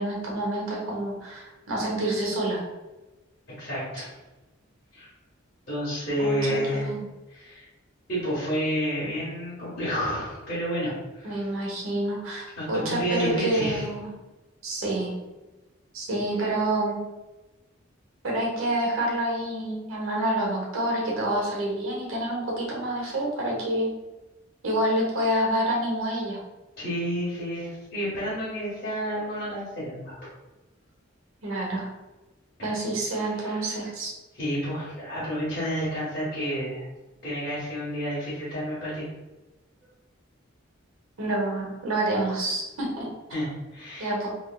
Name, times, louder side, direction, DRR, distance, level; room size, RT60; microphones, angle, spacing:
voice 1, 0.0-2.6 6.2-7.1 11.2-14.1 14.6-15.1 15.9-17.0 18.2-23.9 24.6-26.4 31.4-31.9 32.6-34.1 41.2-43.1 44.0-44.3, right 1 dB, 85° right, -3 dB, 1.0 m, -28 dB
voice 2, 3.6-4.1 4.9-5.1 5.7-6.9 7.3-7.7 8.1-11.4 12.6-13.9 26.8-30.1 32.6-32.7 33.3-33.7 34.3-36.8 37.2-39.1 43.3-44.1, equal, 45° left, -10 dB, 1.3 m, -30 dB
3.1 x 3.1 x 2.3 m, 1.1 s
head